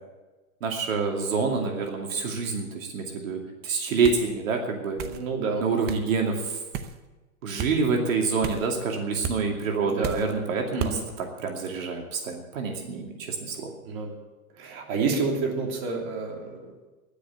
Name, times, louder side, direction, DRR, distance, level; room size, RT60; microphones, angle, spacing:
voice 1, 0.6-5.0 5.6-6.6 7.4-13.7, right 4 dB, 70° right, 2 dB, 2.6 m, -27 dB
sound 1, 4.0-4.3 5.0-5.2 5.9-6.1 6.7-7.0 7.6-7.7 8.4-8.7 9.2-9.4 10.0-10.3 10.8-11.0, right 7 dB, 25° right, 0.7 m, -33 dB
voice 2, 5.0-5.6 9.8-11.0 13.8-14.1 14.6-16.9, right 4 dB, 40° right, 1 dB, 3.0 m, -29 dB
11.0 x 9.9 x 9.1 m, 1.2 s
hypercardioid pair, 135°, 42 cm